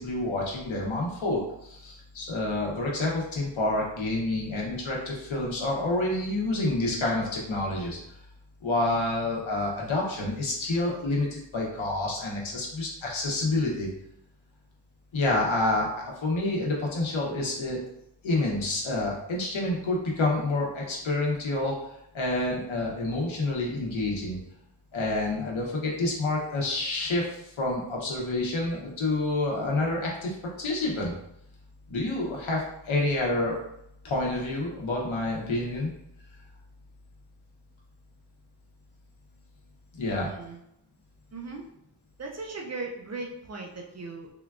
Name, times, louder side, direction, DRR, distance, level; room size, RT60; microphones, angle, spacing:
voice 1, 0.0-8.0 8.6-13.9 15.1-17.8 18.2-21.7 22.1-24.4 24.9-27.3 27.6-31.1 31.9-33.5 34.0-35.9 39.9-40.3, left 2 dB, 80° left, -2 dB, 0.9 m, -28 dB
voice 2, 40.2-40.6 41.3-41.7 42.2-44.3, right 3 dB, 35° right, 1 dB, 0.4 m, -38 dB
3.6 x 2.3 x 2.3 m, 0.78 s
wide cardioid pair, 120°, 46 cm